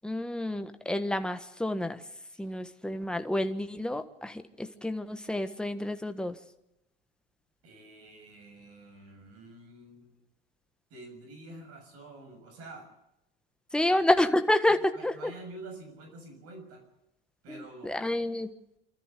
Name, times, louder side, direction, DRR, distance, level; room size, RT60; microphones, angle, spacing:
voice 1, 0.0-2.0 2.4-6.3 13.7-15.3 17.5-18.5, left 1 dB, 5° left, 8 dB, 1.4 m, -29 dB
voice 2, 7.6-10.2 10.9-12.9 13.8-14.0 14.9-16.8 17.4-18.3, right 2 dB, 50° right, 6 dB, 7.0 m, -48 dB
26.0 x 13.5 x 8.4 m, 0.86 s
hypercardioid pair, 85°, 31 cm